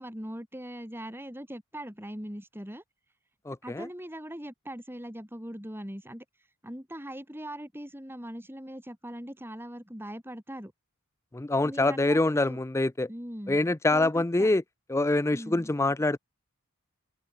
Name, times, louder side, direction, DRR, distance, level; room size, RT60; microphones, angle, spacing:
voice 1, 0.0-2.8 3.6-6.2 6.6-10.7 11.6-12.6 13.1-13.6 13.9-14.5 15.3-15.7, equal, 10° right, 6.8 m, -40 dB
voice 2, 3.5-3.9 11.3-13.1 13.5-14.6 14.9-16.2, left 2 dB, 10° left, 0.4 m, -25 dB
open air
head